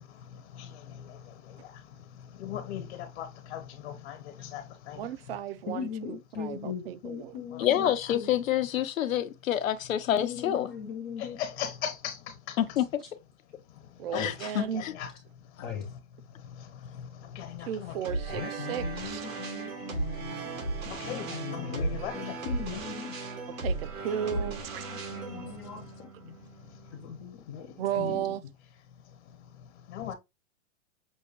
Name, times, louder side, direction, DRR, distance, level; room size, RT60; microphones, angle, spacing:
voice 1, 2.4-5.1 7.5-7.9 11.2-12.2 12.5-12.6 14.1-14.2 14.7-15.1 17.3-18.0 18.3-18.5 20.9-22.4 29.9-30.1, left 9 dB, 55° left, 1.2 m, -38 dB
voice 2, 5.0-7.4 14.0-14.8 17.6-19.3 23.6-24.8 27.8-28.4, right 10 dB, 50° right, 0.5 m, -34 dB
voice 3, 5.7-8.3 10.1-11.4 14.1-14.6 15.6-15.9 18.3-23.1 24.3-26.4 26.9-28.3, left 7 dB, 20° left, 0.4 m, -39 dB
voice 4, 7.6-10.7 12.6-12.8 14.1-14.9, left 11 dB, 80° left, 0.9 m, -27 dB
sound 1, 18.0-27.2, right 3 dB, 90° right, 1.8 m, -36 dB
6.2 x 2.2 x 3.0 m
hypercardioid pair, 140°, 39 cm